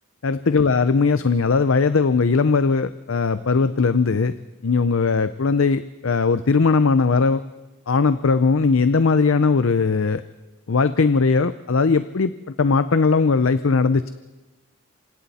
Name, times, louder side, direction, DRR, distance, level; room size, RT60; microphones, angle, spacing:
voice 1, 0.2-4.3 4.6-7.4 7.9-10.2 10.7-14.1, left 4 dB, 65° left, 12 dB, 0.6 m, -19 dB
28.0 x 25.0 x 4.2 m, 1.1 s
head